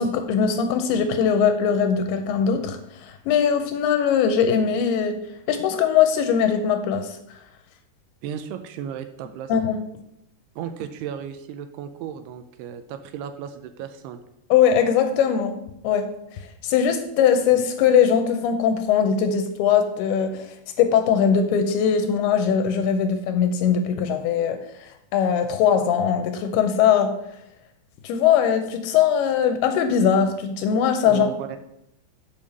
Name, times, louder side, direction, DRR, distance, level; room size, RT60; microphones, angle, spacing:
voice 1, 0.0-5.2 5.5-7.2 9.5-9.8 14.5-15.6 15.8-16.1 16.6-24.6 25.1-27.1 28.0-31.3, left 7 dB, 80° left, 7 dB, 2.4 m, -20 dB
voice 2, 8.2-9.5 10.6-14.2 31.1-31.6, right 9 dB, 80° right, 9 dB, 2.5 m, -35 dB
7.2 x 5.0 x 6.4 m, 0.81 s
omnidirectional pair, 4.9 m